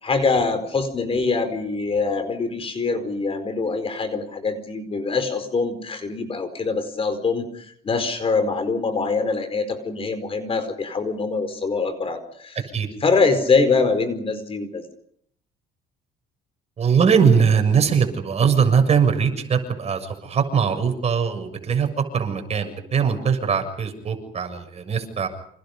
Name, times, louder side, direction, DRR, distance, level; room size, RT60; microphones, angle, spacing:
voice 1, 0.0-12.6 13.0-14.8, left 4 dB, 35° left, 10 dB, 4.7 m, -24 dB
voice 2, 16.8-25.3, right 6 dB, 40° right, 5 dB, 7.0 m, -21 dB
29.5 x 27.5 x 5.4 m, 0.68 s
cardioid pair, 110°, 17 cm